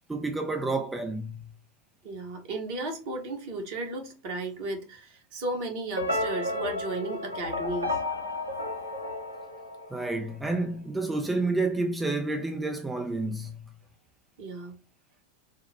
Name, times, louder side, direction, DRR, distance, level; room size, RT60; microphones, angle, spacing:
voice 1, 0.1-1.4 9.9-13.6, right 2 dB, 10° right, 0.4 m, -29 dB
voice 2, 2.0-8.0 14.4-14.7, right 2 dB, 45° right, 1.2 m, -34 dB
sound 1, 6.0-10.3, left 2 dB, 85° right, 0.7 m, -32 dB
4.1 x 2.1 x 4.1 m
figure-of-eight pair, 90°, 0 cm